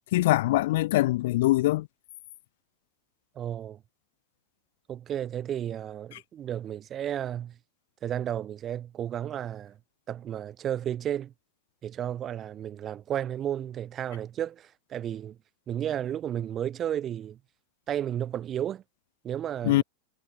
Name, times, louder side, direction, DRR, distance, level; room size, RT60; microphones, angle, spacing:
voice 1, 0.1-1.9 19.6-19.8, left 17 dB, 55° left, 0.6 m, -23 dB
voice 2, 3.3-3.8 4.9-7.5 8.0-9.8 10.1-11.3 11.8-15.4 15.7-17.4 17.9-18.8 19.2-19.8, right 10 dB, 30° right, 5.1 m, -33 dB
figure-of-eight pair, 90°, 0 cm